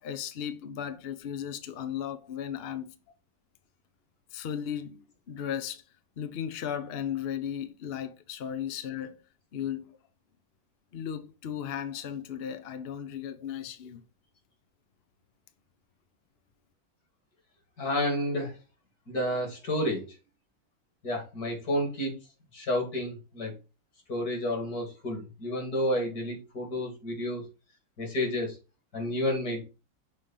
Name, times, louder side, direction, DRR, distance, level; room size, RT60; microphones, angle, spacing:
voice 1, 0.0-2.9 4.3-5.8 6.2-9.2 9.5-9.9 10.9-14.0, left 9 dB, 70° left, 0.5 m, -36 dB
voice 2, 17.8-18.5 19.1-20.0 21.0-22.1 22.5-23.5 24.1-27.4 28.0-28.6 28.9-29.6, left 1 dB, 50° left, 2.7 m, -30 dB
6.4 x 3.8 x 5.5 m
omnidirectional pair, 2.1 m